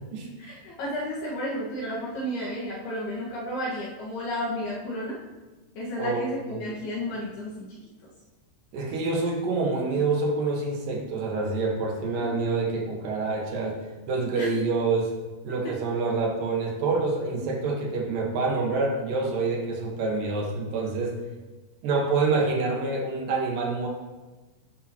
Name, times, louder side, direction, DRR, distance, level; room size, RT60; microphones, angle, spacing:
voice 1, 0.4-5.2 5.8-7.7 14.4-14.5, equal, 65° left, -6 dB, 3.2 m, -32 dB
voice 2, 6.0-6.8 8.7-13.8 14.1-15.1 15.4-21.2 21.8-23.9, right 3 dB, 65° right, -1 dB, 2.4 m, -27 dB
13.5 x 10.5 x 2.9 m, 1.2 s
omnidirectional pair, 5.6 m